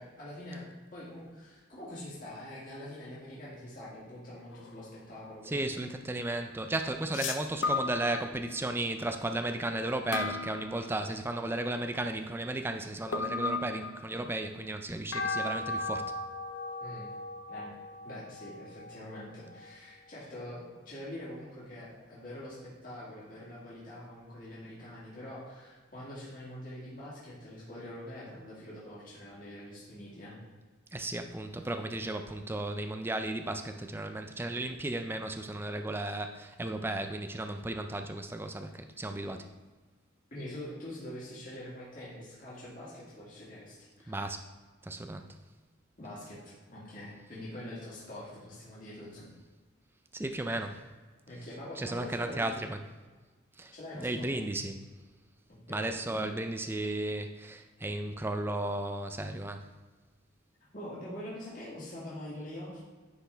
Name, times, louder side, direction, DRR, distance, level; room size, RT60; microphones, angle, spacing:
voice 1, 0.0-5.7 16.8-17.1 17.5-17.7 18.0-30.4 40.3-44.2 46.0-49.3 50.5-50.7 51.3-52.7 53.7-54.3 55.5-56.4 60.7-62.9, left 1 dB, 45° left, -8 dB, 1.9 m, -44 dB
sound 1, 4.5-4.8 7.1-8.6 10.1-11.4 13.1-14.3 15.1-19.7, left 3 dB, 70° left, 0.5 m, -36 dB
voice 2, 5.5-16.1 30.9-39.5 44.1-44.4 44.8-45.3 50.1-50.8 51.8-52.8 53.6-54.9 55.7-59.7, right 1 dB, 10° right, 6 dB, 0.4 m, -34 dB
9.7 x 4.2 x 3.4 m, 1.3 s
head